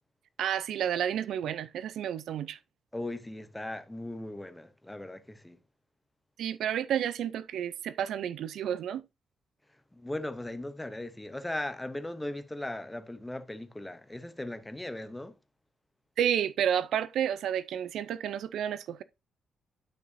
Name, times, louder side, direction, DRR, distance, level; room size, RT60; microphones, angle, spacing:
voice 1, 0.4-2.6 6.4-9.0 16.2-19.0, right 9 dB, 65° right, 0.4 m, -30 dB
voice 2, 2.9-5.6 9.9-15.4, left 1 dB, 5° left, 0.7 m, -38 dB
10.5 x 6.2 x 2.6 m
cardioid pair, 180°, 0 cm